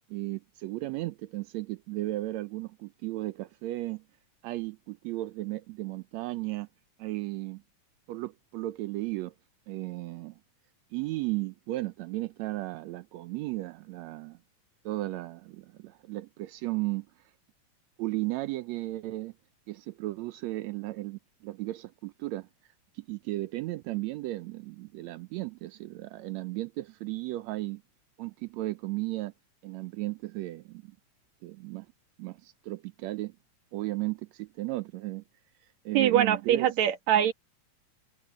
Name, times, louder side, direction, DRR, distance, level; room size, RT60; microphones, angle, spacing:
voice 1, 0.1-4.0 4.4-6.7 7.0-7.6 8.1-9.3 9.7-10.4 10.9-14.4 14.8-17.1 18.0-19.3 19.7-22.5 22.9-27.8 28.2-29.3 29.6-30.9 31.4-31.9 32.2-33.3 33.7-35.2 35.8-36.8 37.2-37.3, right 18 dB, 90° right, 1.5 m, -35 dB
voice 2, 35.9-37.3, right 10 dB, 60° right, 2.5 m, -23 dB
omnidirectional pair, 3.9 m